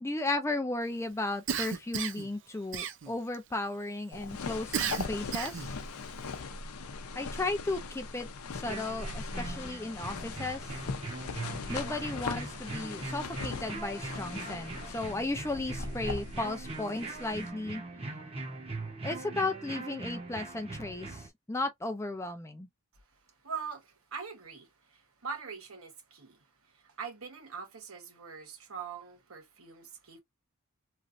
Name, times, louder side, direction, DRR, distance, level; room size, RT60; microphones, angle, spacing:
voice 1, 0.0-5.7 7.1-8.3 8.5-10.8 11.7-18.0 19.0-22.7, left 2 dB, 15° left, 0.5 m, -35 dB
Cough, 1.5-2.3 2.7-3.4 4.7-5.7, right 7 dB, 55° right, 0.5 m, -33 dB
sound 1, 4.1-17.5, left 4 dB, 85° left, 0.6 m, -40 dB
sound 2, 8.6-21.3, right 3 dB, 25° right, 0.8 m, -41 dB
voice 2, 23.4-30.2, right 6 dB, 75° right, 1.1 m, -43 dB
3.1 x 2.5 x 2.5 m
head